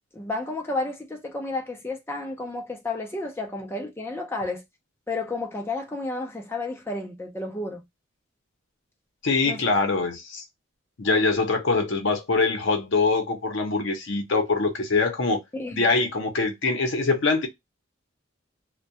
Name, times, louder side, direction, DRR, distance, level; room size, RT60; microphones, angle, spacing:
voice 1, 0.1-4.6 5.1-7.8 9.5-9.6 15.5-15.8, left 2 dB, 10° left, 0.5 m, -31 dB
voice 2, 9.2-10.4 11.0-15.4 15.7-17.5, left 3 dB, 60° left, 0.7 m, -23 dB
2.2 x 2.2 x 2.7 m
head